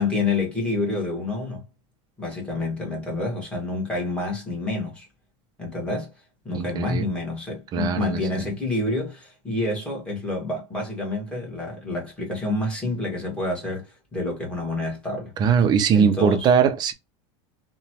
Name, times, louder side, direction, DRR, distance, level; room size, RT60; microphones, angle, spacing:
voice 1, 0.0-1.6 2.2-5.1 5.6-6.1 6.4-15.3 15.9-16.5, left 2 dB, 5° left, 1.2 m, -28 dB
voice 2, 6.5-7.0 7.7-8.5 15.4-16.9, right 7 dB, 25° right, 0.4 m, -21 dB
2.9 x 2.2 x 2.8 m
supercardioid pair, 155°, 15 cm